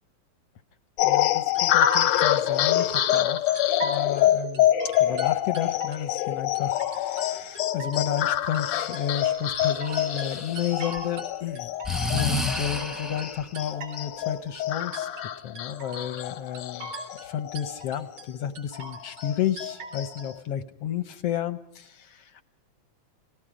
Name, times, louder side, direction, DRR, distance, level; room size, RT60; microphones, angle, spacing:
sound 1, 1.0-17.9 18.2-18.3 18.7-20.3, left 12 dB, 90° left, 2.5 m, -26 dB
voice 1, 1.0-4.7 5.0-11.7 12.1-15.1 15.4-16.9 17.2-22.4, left 9 dB, 65° left, 11 dB, 1.7 m, -32 dB
sound 2, 1.5-3.2 3.6-4.2 4.5-6.3 6.5-7.3 7.6-11.3 11.6-14.3 14.5-15.3 15.6-16.3 16.5-17.3 17.5-18.3 18.5-19.3 19.6-20.2, right 1 dB, 60° right, 4.7 m, -38 dB
Breathing, 9.8-11.0 11.8-13.4, left 2 dB, ahead, 0.8 m, -30 dB
29.5 x 19.0 x 5.0 m, 0.80 s
omnidirectional pair, 3.5 m